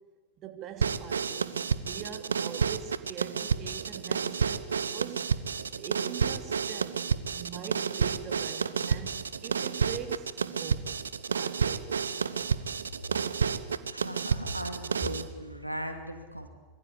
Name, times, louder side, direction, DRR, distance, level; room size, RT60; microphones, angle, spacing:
voice 1, 0.4-5.3 5.8-7.0 7.3-10.9 11.3-12.0, right 8 dB, 35° right, 3.0 m, -43 dB
sound 1, 0.8-15.3, right 6 dB, 70° right, 1.1 m, -30 dB
voice 2, 13.9-16.5, equal, 90° right, 2.4 m, -38 dB
25.5 x 23.0 x 8.5 m
figure-of-eight pair, 90°, 0 cm